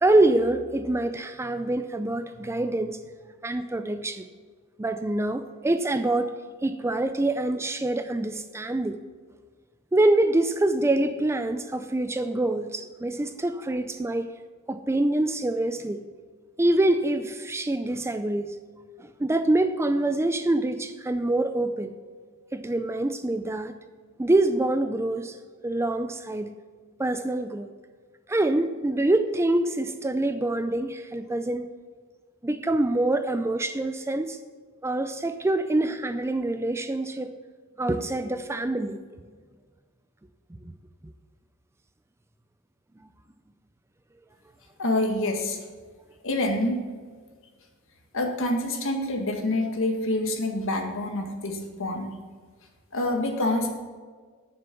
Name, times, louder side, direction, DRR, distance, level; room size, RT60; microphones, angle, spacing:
voice 1, 0.0-3.0 3.4-4.2 4.8-6.3 6.6-9.0 9.9-14.3 14.7-16.0 16.6-18.5 19.0-21.9 22.5-23.8 24.2-25.4 25.6-26.5 27.0-27.7 28.3-31.7 32.4-34.4 34.8-37.3 37.8-39.0 40.6-40.7, right 2 dB, 10° right, 10 dB, 0.4 m, -25 dB
voice 2, 44.8-45.6 46.2-46.8 48.1-52.1 52.9-53.8, left 1 dB, 65° left, 3 dB, 1.8 m, -26 dB
10.5 x 6.8 x 7.0 m, 1.5 s
head